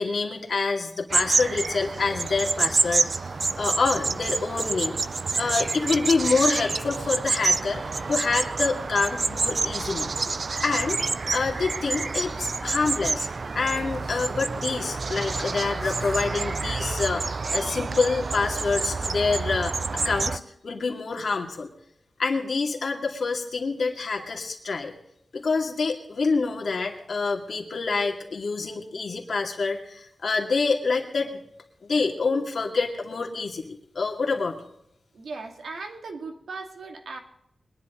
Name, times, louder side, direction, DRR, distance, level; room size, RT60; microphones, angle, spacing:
voice 1, 0.0-5.0 5.4-7.8 8.1-10.1 10.6-11.0 11.3-13.3 13.5-19.8 20.0-21.7 22.2-24.9 25.3-31.4 31.8-34.6, left 4 dB, 55° left, 1 dB, 2.4 m, -27 dB
sound 1, 1.1-20.4, right 4 dB, 45° right, 0.5 m, -28 dB
voice 2, 35.1-37.2, right 3 dB, 80° right, 4 dB, 2.2 m, -38 dB
23.0 x 10.5 x 3.9 m, 0.77 s
wide cardioid pair, 165°, 0 cm